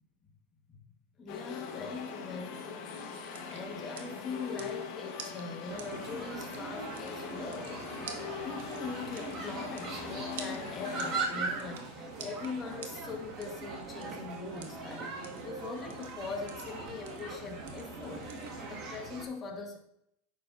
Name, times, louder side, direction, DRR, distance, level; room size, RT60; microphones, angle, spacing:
voice 1, 1.2-18.3 18.7-19.8, left 4 dB, 20° left, 2 dB, 1.6 m, -42 dB
sound 1, 1.3-11.2, left 6 dB, 50° left, 1.5 m, -42 dB
sound 2, 3.2-18.8, right 7 dB, 75° right, 1.4 m, -52 dB
sound 3, 5.7-19.2, right 3 dB, 35° right, 2.2 m, -40 dB
9.8 x 7.1 x 2.8 m, 0.76 s
supercardioid pair, 135°, 0 cm